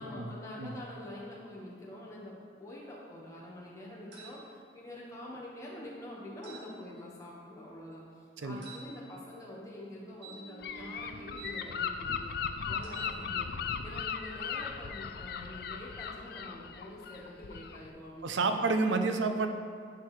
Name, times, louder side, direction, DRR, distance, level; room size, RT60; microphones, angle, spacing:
voice 1, 0.0-12.3 12.7-13.5 13.8-18.6 19.1-19.3, left 1 dB, 15° left, -5 dB, 1.2 m, -46 dB
sound 1, 4.1-4.4 6.4-6.7 8.6-8.8 10.2-11.5 12.8-13.1, right 5 dB, 70° right, 1.7 m, -48 dB
Gull seagull / Wind, 10.6-17.9, left 6 dB, 55° left, 0.3 m, -37 dB
voice 2, 18.2-19.5, right 3 dB, 85° right, 7 dB, 0.6 m, -29 dB
10.5 x 4.7 x 3.2 m, 2.3 s
head